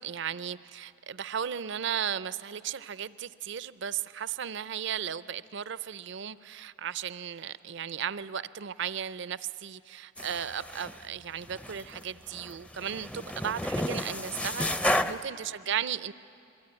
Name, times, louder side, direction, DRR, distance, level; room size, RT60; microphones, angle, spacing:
voice 1, 0.0-16.1, right 8 dB, 65° right, 16 dB, 0.5 m, -35 dB
sound 1, 10.2-11.0 11.5-12.0 12.3-15.2, left 1 dB, 5° left, 0.5 m, -32 dB
27.0 x 22.0 x 9.8 m, 2.6 s
head